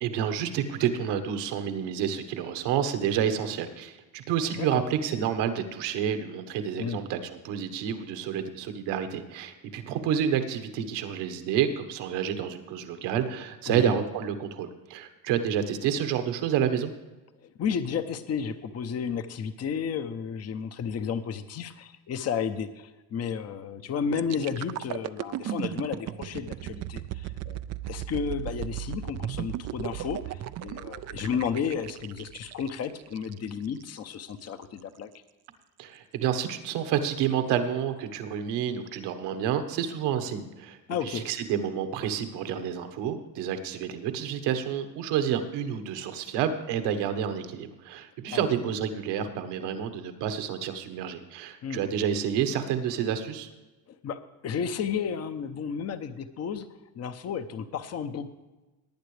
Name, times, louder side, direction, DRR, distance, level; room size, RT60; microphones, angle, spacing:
voice 1, 0.0-16.9 35.8-40.8 41.0-53.5, right 8 dB, 75° right, 8 dB, 1.4 m, -29 dB
voice 2, 17.4-27.6 27.9-35.1 40.9-41.3 48.3-48.4 51.6-51.8 53.9-56.7 56.9-58.3, left 7 dB, 35° left, 10 dB, 0.9 m, -32 dB
sound 1, 24.2-34.0 34.5-34.6, right 12 dB, 40° right, 0.4 m, -36 dB
19.0 x 9.0 x 3.3 m, 1.1 s
supercardioid pair, 105°, 42 cm